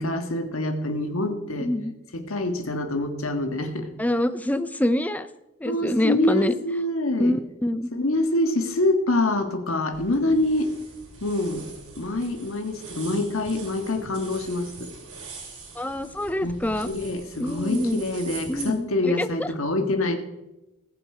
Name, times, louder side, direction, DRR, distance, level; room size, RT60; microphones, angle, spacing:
voice 1, 0.0-1.7 2.1-3.9 5.6-7.3 7.9-10.7 11.2-11.7 12.0-14.9 16.4-20.2, left 2 dB, 65° left, 6 dB, 1.5 m, -25 dB
voice 2, 1.6-1.9 4.0-5.3 5.6-6.5 7.2-7.9 15.8-16.9 17.4-18.0 18.5-19.5, left 1 dB, 5° left, 13 dB, 0.4 m, -25 dB
sound 1, 9.9-18.7, right 4 dB, 85° right, 4.0 m, -42 dB
19.5 x 7.1 x 4.9 m, 0.97 s
head